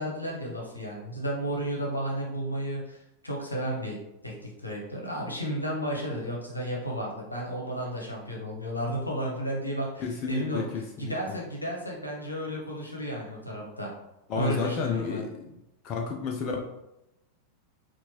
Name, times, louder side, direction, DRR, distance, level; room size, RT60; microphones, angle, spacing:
voice 1, 0.0-4.0 4.2-10.7 11.0-13.9 14.3-15.2, equal, 85° left, -2 dB, 0.9 m, -33 dB
voice 2, 10.0-11.1 14.3-15.3 15.8-16.6, left 5 dB, 40° left, 1 dB, 0.5 m, -31 dB
4.3 x 2.5 x 2.8 m, 0.90 s
figure-of-eight pair, 90°, 0 cm